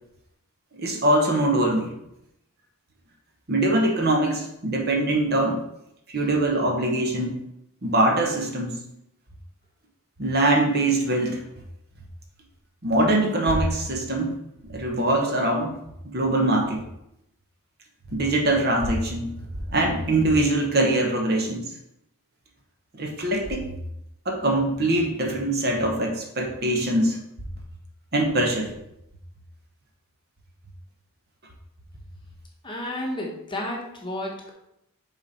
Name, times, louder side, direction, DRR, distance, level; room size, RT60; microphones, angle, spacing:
voice 1, 0.7-1.9 3.5-5.6 6.1-7.4 7.8-8.8 10.2-11.4 12.8-14.3 14.6-15.7 16.0-16.8 18.1-19.4 19.7-21.6 22.9-23.7 24.2-27.2 28.1-28.7, right 1 dB, 45° right, 1 dB, 1.0 m, -23 dB
voice 2, 32.6-34.5, left 1 dB, 20° left, -1 dB, 1.0 m, -31 dB
6.6 x 4.1 x 4.2 m, 0.81 s
head